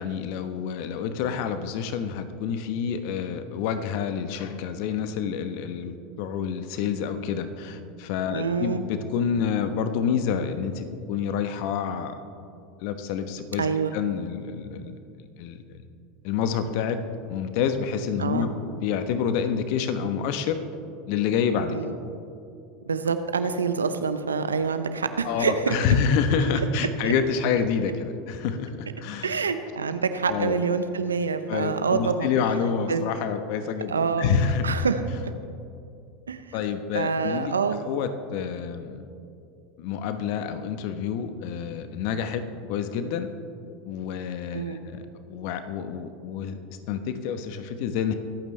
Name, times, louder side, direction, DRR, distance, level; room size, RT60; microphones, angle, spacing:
voice 1, 0.0-12.2 12.8-14.9 15.2-15.8 16.2-17.0 17.3-20.6 21.1-21.8 25.2-29.5 30.3-30.6 31.5-34.7 36.5-37.6 37.8-39.0 39.8-43.3 43.9-48.1, left 7 dB, 60° left, 9 dB, 1.0 m, -28 dB
voice 2, 8.3-8.8 13.6-13.9 18.2-18.5 21.7-22.0 22.9-25.8 27.0-27.1 29.2-32.3 32.9-33.0 33.9-34.3 34.6-35.0 36.3-36.6 36.9-37.8 44.5-44.8, right 5 dB, 90° right, 10 dB, 0.7 m, -26 dB
23.5 x 8.8 x 3.3 m, 2.6 s
hypercardioid pair, 85°, 0 cm